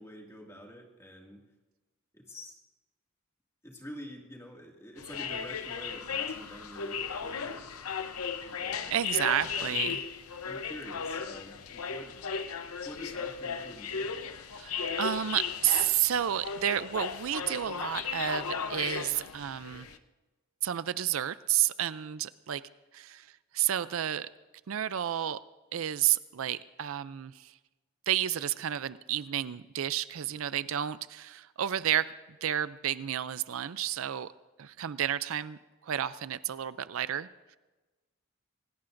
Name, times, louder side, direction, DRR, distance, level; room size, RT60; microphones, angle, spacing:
voice 1, 0.0-1.4 2.1-2.6 3.6-7.7 8.5-9.0 9.5-9.8 10.4-12.2 12.8-14.2, equal, 15° left, -1 dB, 2.2 m, -47 dB
sound 1, 5.0-20.0, left 6 dB, 90° left, 0.8 m, -36 dB
voice 2, 8.9-10.0 14.6-19.9 20.6-22.6 22.9-24.3 24.7-25.4 25.7-27.6 28.1-32.1 32.4-34.3 34.6-37.6, right 11 dB, 75° right, 16 dB, 0.4 m, -31 dB
26.5 x 17.0 x 2.6 m, 1.2 s
head